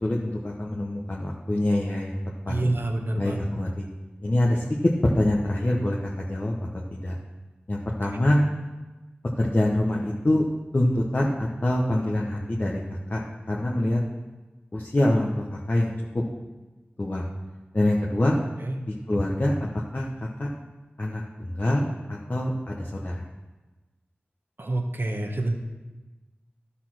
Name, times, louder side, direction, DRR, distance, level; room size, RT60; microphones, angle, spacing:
voice 1, 0.0-2.2 2.5-2.6 3.2-3.9 4.2-7.1 7.7-8.4 9.4-10.5 10.7-12.8 13.1-14.0 14.7-16.2 17.0-17.2 17.7-18.4 18.9-20.1 20.4-20.5 21.0-23.2, left 1 dB, 45° left, -3 dB, 1.0 m, -25 dB
voice 2, 2.5-3.4 18.6-18.8 24.6-25.5, right 2 dB, 60° right, 3 dB, 1.2 m, -27 dB
12.5 x 4.2 x 6.0 m, 1.2 s
wide cardioid pair, 45°, 4 cm